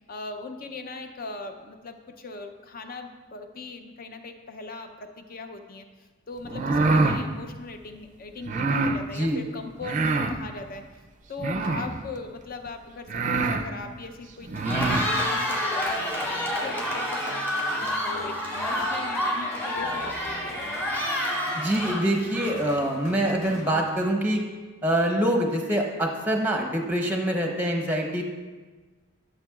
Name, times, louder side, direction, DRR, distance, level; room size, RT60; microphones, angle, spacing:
voice 1, 0.1-5.9 6.3-10.8 11.3-14.5 14.8-16.1 16.6-20.8, left 3 dB, 45° left, 6 dB, 0.6 m, -39 dB
sound 1, 6.4-7.2 8.4-9.0 9.8-10.4 11.4-12.0 12.7-12.8 13.1-13.6 14.4-15.1, right 3 dB, 40° right, 0.4 m, -24 dB
voice 2, 9.1-9.4 21.5-24.4 24.8-28.2, right 1 dB, 10° right, 2 dB, 0.8 m, -25 dB
Cheering, 14.5-22.8, left 1 dB, 10° left, 1.6 m, -28 dB
sound 2, 15.9-24.4, left 1 dB, 85° left, 1.2 m, -44 dB
12.0 x 6.8 x 2.4 m, 1.3 s
head